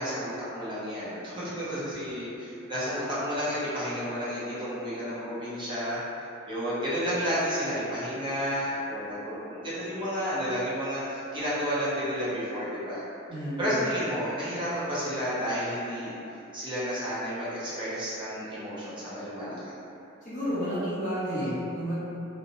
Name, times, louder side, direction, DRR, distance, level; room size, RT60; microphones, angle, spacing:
voice 1, 0.0-6.0 6.5-13.0 13.6-16.1 16.5-19.7, equal, 20° right, -10 dB, 0.7 m, -31 dB
voice 2, 13.3-13.8 20.2-21.9, equal, 35° left, -13 dB, 1.0 m, -31 dB
2.5 x 2.0 x 2.7 m, 2.9 s
head